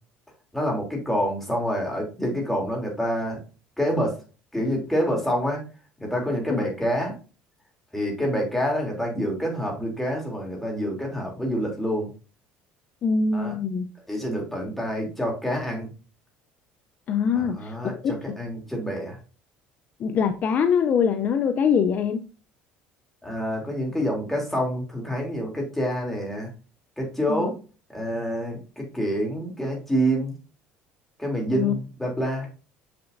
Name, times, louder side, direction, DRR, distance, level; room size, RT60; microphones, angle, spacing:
voice 1, 0.5-3.4 3.8-4.2 4.5-5.6 6.0-7.2 7.9-12.1 13.3-13.6 14.1-15.9 17.4-19.2 23.2-26.5 27.0-27.6 27.9-30.4 31.2-32.5, equal, 5° left, 0 dB, 3.2 m, -27 dB
voice 2, 13.0-13.9 17.1-17.8 18.0-18.1 20.0-22.2 27.3-27.5 31.5-31.7, left 6 dB, 45° left, 8 dB, 0.6 m, -23 dB
6.9 x 6.8 x 2.7 m, 0.34 s
cardioid pair, 120°, 4 cm